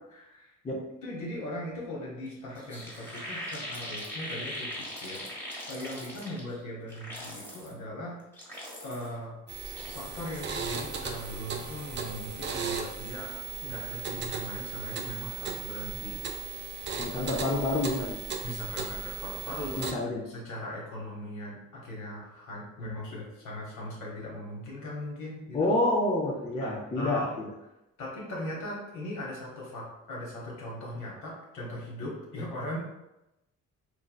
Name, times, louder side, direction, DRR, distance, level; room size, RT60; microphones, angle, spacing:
voice 1, 0.1-0.5 1.0-5.2 5.7-8.2 8.8-9.4 9.9-16.2 18.4-20.0 20.2-25.8 26.6-27.3 28.0-32.8, left 1 dB, 75° left, -4 dB, 1.2 m, -39 dB
sound 1, 2.3-2.4 2.5-6.6 6.9-7.7 8.2-9.1 9.5-12.5 12.8-13.2, equal, 5° left, 1.3 m, -41 dB
sound 2, 9.5-19.9, right 5 dB, 40° right, 0.4 m, -37 dB
voice 2, 17.0-18.2 19.7-20.2 25.5-27.5, left 2 dB, 20° left, -3 dB, 0.4 m, -28 dB
3.2 x 2.5 x 2.2 m, 0.92 s
cardioid pair, 90°, 30 cm